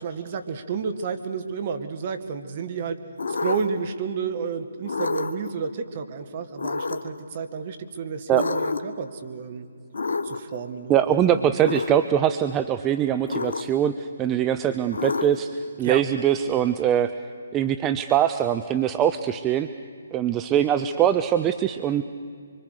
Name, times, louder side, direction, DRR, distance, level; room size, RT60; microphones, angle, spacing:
voice 1, 0.0-3.0 3.3-9.7 10.2-11.6 15.8-16.0, right 6 dB, 40° right, 8 dB, 1.7 m, -31 dB
sound 1, 3.2-3.9 4.9-5.5 6.6-7.2 8.3-9.0 9.9-10.6 11.6-12.0 13.3-13.9 14.9-15.6, left 4 dB, 70° left, 1.3 m, -28 dB
voice 2, 10.9-17.1 17.5-19.7 20.1-22.0, right 10 dB, 20° right, 10 dB, 0.6 m, -22 dB
25.0 x 24.5 x 6.6 m, 2.3 s
figure-of-eight pair, 145°, 0 cm